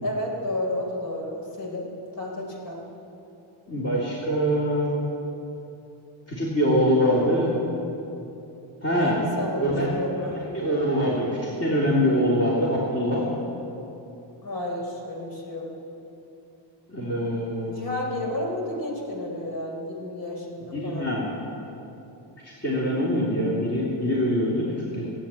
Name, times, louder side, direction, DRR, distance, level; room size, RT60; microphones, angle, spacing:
voice 1, 0.0-2.8 9.0-10.4 14.4-15.7 17.7-21.1, left 1 dB, 45° left, -1 dB, 4.0 m, -31 dB
voice 2, 3.7-4.9 6.3-7.5 8.8-9.2 9.6-9.9 10.3-11.3 11.6-13.2 16.9-17.8 20.7-21.3 22.4-24.6 24.9-25.1, equal, 30° left, -6 dB, 3.3 m, -24 dB
18.0 x 8.8 x 9.0 m, 2.9 s
cardioid pair, 125°, 48 cm